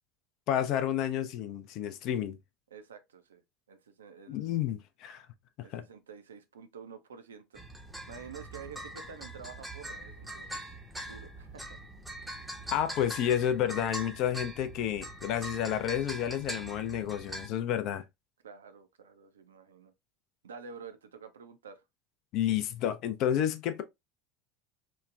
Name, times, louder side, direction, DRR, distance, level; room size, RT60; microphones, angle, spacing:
voice 1, 0.5-2.4 4.3-5.3 5.7-5.8 12.7-18.0 22.3-23.8, left 10 dB, 50° left, 0.4 m, -30 dB
voice 2, 2.7-3.4 3.7-4.5 5.6-7.7 8.1-10.7 11.0-11.8 13.8-14.1 18.4-19.9 20.4-21.8, right 6 dB, 75° right, 0.4 m, -49 dB
sound 1, 7.5-17.5, right 1 dB, 5° right, 0.6 m, -42 dB
3.0 x 2.1 x 2.3 m
figure-of-eight pair, 75°, 0 cm